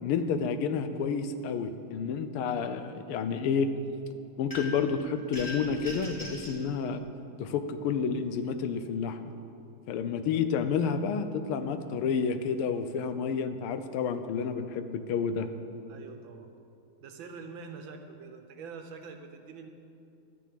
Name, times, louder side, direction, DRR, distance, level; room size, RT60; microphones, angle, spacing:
voice 1, 0.0-3.8 4.4-7.0 7.4-9.2 9.9-15.5, left 6 dB, 90° left, 10 dB, 1.6 m, -30 dB
sound 1, 4.5-4.9 5.3-6.6, left 1 dB, 15° left, 2.0 m, -40 dB
voice 2, 15.9-16.5 17.0-19.7, right 5 dB, 70° right, 5 dB, 1.5 m, -45 dB
12.5 x 9.5 x 5.0 m, 2.7 s
omnidirectional pair, 2.3 m